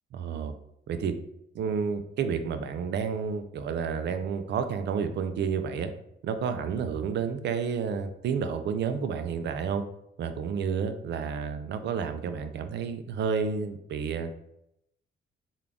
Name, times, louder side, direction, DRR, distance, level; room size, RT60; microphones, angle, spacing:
voice 1, 0.1-0.5 0.9-1.1 1.5-5.9 6.2-9.8 10.2-14.3, right 6 dB, 60° right, 9 dB, 0.5 m, -30 dB
3.7 x 2.3 x 3.4 m, 0.79 s
cardioid pair, 90°, 20 cm